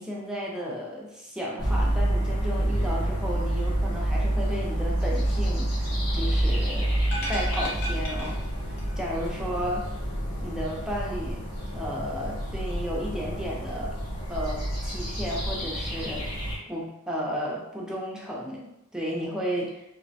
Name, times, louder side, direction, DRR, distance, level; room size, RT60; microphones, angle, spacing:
voice 1, 0.0-6.9 7.3-8.4 8.6-9.8 10.4-11.4 11.7-14.0 14.3-19.8, equal, 5° right, -4 dB, 0.4 m, -33 dB
sound 1, 1.6-16.6, right 1 dB, 80° left, 1.3 m, -28 dB
sound 2, 7.1-9.0 9.2-9.3, equal, 55° left, 0.6 m, -35 dB
3.0 x 2.1 x 2.6 m, 0.85 s
head